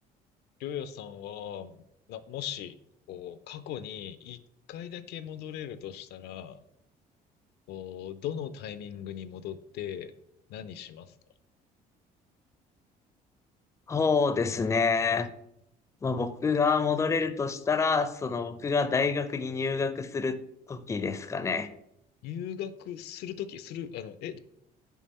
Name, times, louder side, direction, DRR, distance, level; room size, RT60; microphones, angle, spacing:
voice 1, 0.6-2.8 3.1-4.4 4.7-6.6 7.7-10.1 10.5-11.2 22.2-24.4, left 9 dB, 80° left, 13 dB, 0.5 m, -39 dB
voice 2, 13.9-15.3 16.0-20.4 20.7-21.7, left 5 dB, 15° left, 11 dB, 0.4 m, -27 dB
5.5 x 4.9 x 4.1 m, 0.76 s
cardioid pair, 110°, 17 cm